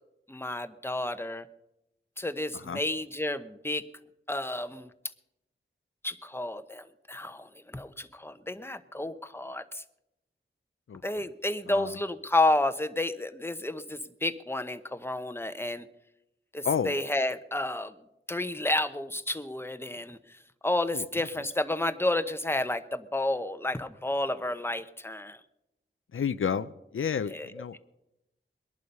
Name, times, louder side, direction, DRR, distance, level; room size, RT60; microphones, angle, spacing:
voice 1, 0.3-1.5 2.2-3.8 4.3-4.9 6.0-9.8 11.0-15.9 16.5-17.9 18.3-25.4 27.3-27.8, left 2 dB, 10° left, 11 dB, 0.9 m, -31 dB
voice 2, 11.7-12.0 16.6-17.0 20.9-21.0 26.1-27.8, left 7 dB, 80° left, 13 dB, 0.6 m, -31 dB
21.0 x 11.0 x 5.4 m, 0.90 s
wide cardioid pair, 60°, 21 cm